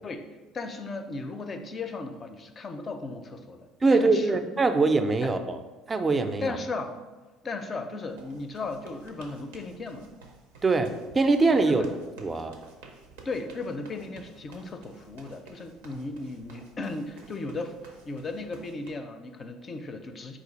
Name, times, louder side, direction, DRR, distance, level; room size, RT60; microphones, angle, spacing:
voice 1, 0.5-4.4 5.2-5.3 6.4-7.0 7.4-10.1 11.7-11.9 13.2-20.4, left 3 dB, 40° left, 6 dB, 0.4 m, -36 dB
voice 2, 3.8-5.6 5.9-6.6 10.6-11.8 12.2-12.6, right 3 dB, 25° right, 8 dB, 0.4 m, -23 dB
sound 1, 8.1-18.9, right 3 dB, 90° right, 0.5 m, -52 dB
4.1 x 2.4 x 4.0 m, 1.2 s
supercardioid pair, 75°, 0 cm